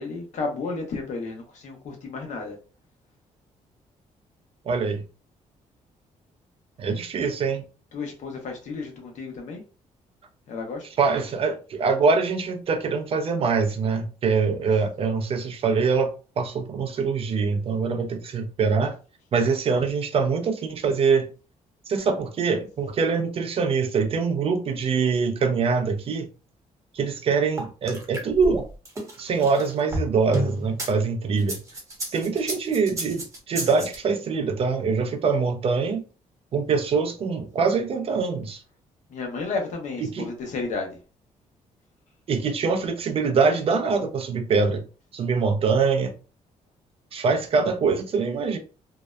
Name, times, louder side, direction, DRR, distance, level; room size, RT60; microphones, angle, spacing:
voice 1, 0.0-2.6 7.2-7.3 7.9-9.6 10.5-10.9 39.1-40.9, left 3 dB, 65° left, 0.9 m, -32 dB
voice 2, 4.7-5.0 6.8-7.6 11.0-18.9 19.3-21.3 21.9-26.3 26.9-28.6 29.2-31.6 32.1-36.1 36.5-38.6 40.0-40.3 42.3-44.8 45.1-46.1 47.1-48.6, right 5 dB, 45° right, 0.4 m, -24 dB
sound 1, 27.6-30.9 31.4-34.0, right 1 dB, 25° right, 0.9 m, -31 dB
2.7 x 2.0 x 2.2 m
cardioid pair, 115°, 13 cm